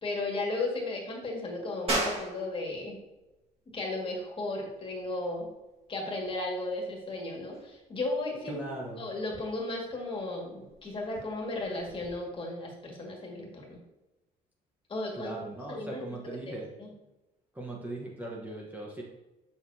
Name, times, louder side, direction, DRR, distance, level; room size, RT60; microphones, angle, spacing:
voice 1, 0.0-3.0 3.7-5.5 5.9-13.8 14.9-15.3 15.7-16.2 16.5-16.9, left 2 dB, 30° left, -1 dB, 1.9 m, -35 dB
sound 1, 1.9-12.1, right 1 dB, 35° right, 1.7 m, -40 dB
voice 2, 8.5-9.0 15.1-16.7 17.5-19.0, right 1 dB, 10° right, -3 dB, 1.0 m, -39 dB
6.8 x 5.8 x 2.7 m, 1.0 s
cardioid pair, 110°, 17 cm